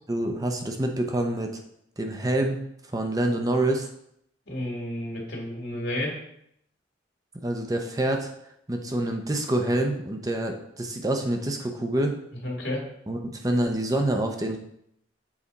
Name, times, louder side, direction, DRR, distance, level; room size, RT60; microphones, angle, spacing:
voice 1, 0.1-1.6 2.0-2.6 2.9-3.9 7.4-8.3 8.7-12.2 13.1-14.6, right 1 dB, 20° right, 4 dB, 0.7 m, -26 dB
voice 2, 4.5-6.2 12.4-12.8, left 1 dB, 65° left, -1 dB, 2.0 m, -31 dB
7.3 x 4.3 x 4.1 m, 0.74 s
head